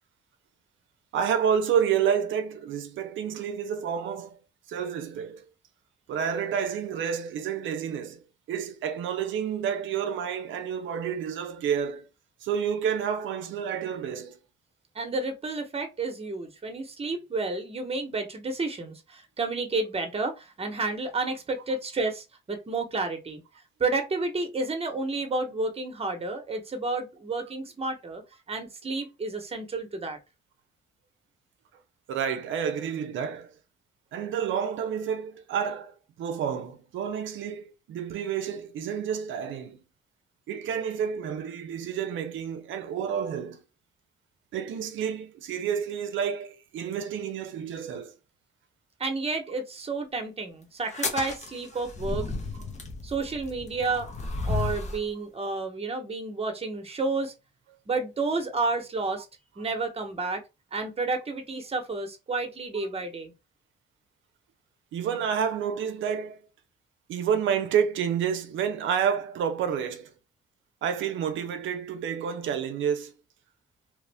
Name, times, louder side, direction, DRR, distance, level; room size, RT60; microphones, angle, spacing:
voice 1, 1.1-4.3 4.7-5.4 6.1-8.2 8.5-12.1 12.4-14.4 32.1-33.5 34.1-39.8 40.5-43.6 44.5-48.2 64.9-66.4 67.1-70.1 70.8-73.1, right 8 dB, 75° right, 0.6 m, -29 dB
voice 2, 14.9-23.4 23.8-28.2 28.5-30.2 49.0-52.3 53.0-54.1 54.4-57.3 57.9-59.3 59.6-60.4 60.7-63.3, right 3 dB, 30° right, 1.0 m, -31 dB
sound 1, 50.8-55.1, left 3 dB, 35° left, 1.0 m, -33 dB
3.0 x 2.4 x 3.4 m
cardioid pair, 90°, 20 cm